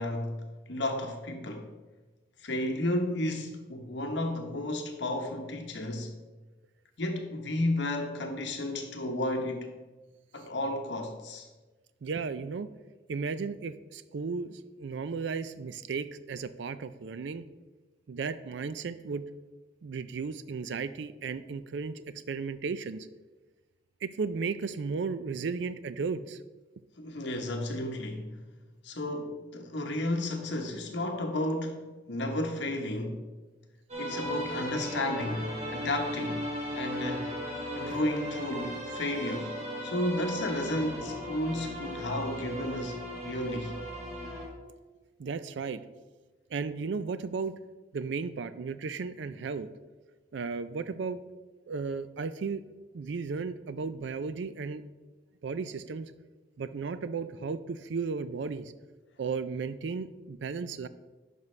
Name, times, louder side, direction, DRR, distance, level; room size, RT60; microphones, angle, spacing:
voice 1, 0.0-1.7 2.4-6.2 7.0-9.7 10.3-11.5 27.0-28.4 28.8-33.2 34.0-36.5 36.7-37.3 37.8-39.5 39.8-43.0 43.2-43.7, left 1 dB, 75° left, 1.0 m, -32 dB
voice 2, 12.0-12.7 13.1-17.5 18.1-19.3 19.8-22.0 22.3-23.1 24.0-26.4 45.2-45.8 46.5-47.6 47.9-49.7 50.3-51.2 51.7-52.6 52.9-54.8 55.4-56.1 56.6-58.7 59.2-60.9, right 5 dB, 75° right, 0.4 m, -34 dB
sound 1, 33.9-44.5, equal, 35° right, 1.5 m, -37 dB
10.5 x 5.4 x 3.2 m
head